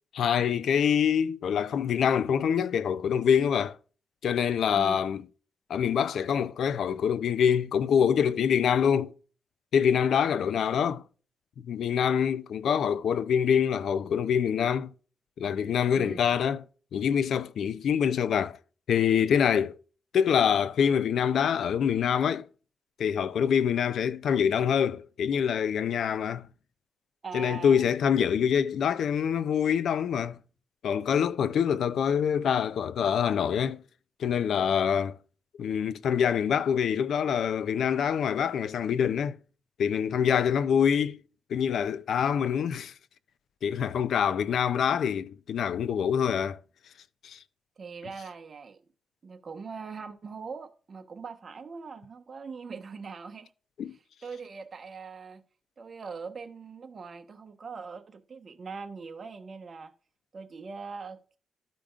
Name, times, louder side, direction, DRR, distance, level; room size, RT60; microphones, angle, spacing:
voice 1, 0.1-3.8 4.2-5.2 5.7-9.1 9.7-11.0 11.6-14.9 15.4-16.6 16.9-18.6 18.9-19.8 20.1-22.5 23.0-26.5 27.3-30.4 30.8-33.8 34.2-35.2 35.6-39.4 39.8-41.2 41.5-42.9 43.6-46.6 47.2-47.4 53.8-54.0, left 8 dB, 75° left, 0.5 m, -25 dB
voice 2, 4.7-5.1 15.9-16.3 27.2-27.9 47.8-48.8 49.2-53.5 53.9-55.4 55.8-59.9 60.3-61.4, right 5 dB, 50° right, 1.0 m, -41 dB
13.5 x 5.1 x 2.4 m
cardioid pair, 85°, 0 cm